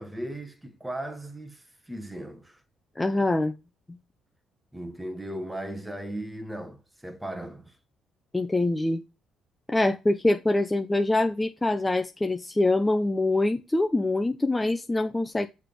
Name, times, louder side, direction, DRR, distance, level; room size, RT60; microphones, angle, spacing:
voice 1, 0.0-2.6 4.7-7.8, right 1 dB, 10° right, 1.1 m, -37 dB
voice 2, 3.0-3.5 8.3-9.0 9.7-15.5, left 2 dB, 15° left, 0.6 m, -24 dB
6.6 x 3.5 x 5.9 m
supercardioid pair, 80°, 0 cm